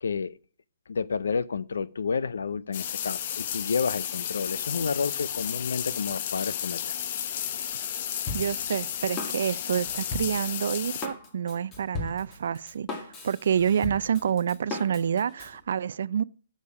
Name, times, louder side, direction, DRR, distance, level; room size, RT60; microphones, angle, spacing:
voice 1, 0.0-0.4 0.9-7.2, left 5 dB, 90° left, 0.5 m, -30 dB
sound 1, 2.7-11.1, left 10 dB, 50° left, 0.7 m, -33 dB
Drum kit, 8.3-15.6, left 3 dB, 20° left, 1.9 m, -38 dB
voice 2, 8.3-16.2, right 8 dB, 70° right, 0.4 m, -28 dB
8.6 x 6.4 x 4.8 m
hypercardioid pair, 150°, 0 cm